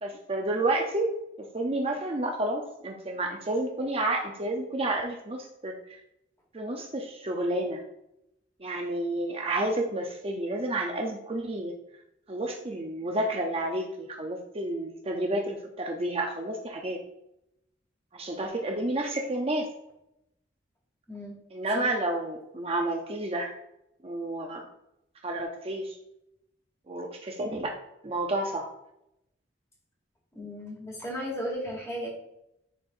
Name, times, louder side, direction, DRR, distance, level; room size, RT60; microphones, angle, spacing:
voice 1, 0.0-1.1 1.4-6.0 6.5-7.8 8.6-11.7 12.3-17.0 18.1-19.7 21.5-23.5 24.0-24.7 25.2-26.0 26.9-27.8 28.0-28.7, right 1 dB, 35° right, 2 dB, 0.6 m, -30 dB
voice 2, 30.3-32.1, equal, 15° left, -3 dB, 2.5 m, -35 dB
10.0 x 4.5 x 2.6 m, 0.83 s
head